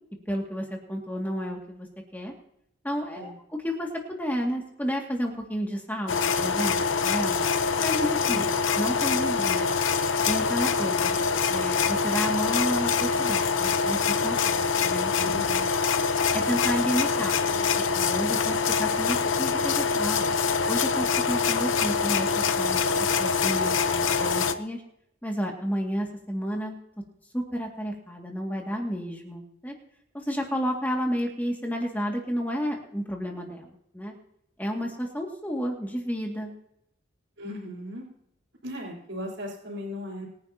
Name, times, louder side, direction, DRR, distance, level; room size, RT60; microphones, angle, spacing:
voice 1, 0.3-1.9 2.1-2.3 2.8-3.3 3.6-7.4 7.8-9.7 10.3-11.1 11.5-15.3 16.3-20.3 20.7-22.8 23.2-24.8 25.2-26.8 27.3-29.7 30.1-34.1 34.6-36.5, equal, 10° left, 0 dB, 2.2 m, -31 dB
sound 1, 6.1-24.5, left 5 dB, 90° left, 0.9 m, -25 dB
voice 2, 15.2-15.6 37.4-38.1 38.6-40.3, left 1 dB, 85° right, -6 dB, 4.3 m, -37 dB
24.0 x 10.5 x 2.9 m, 0.77 s
head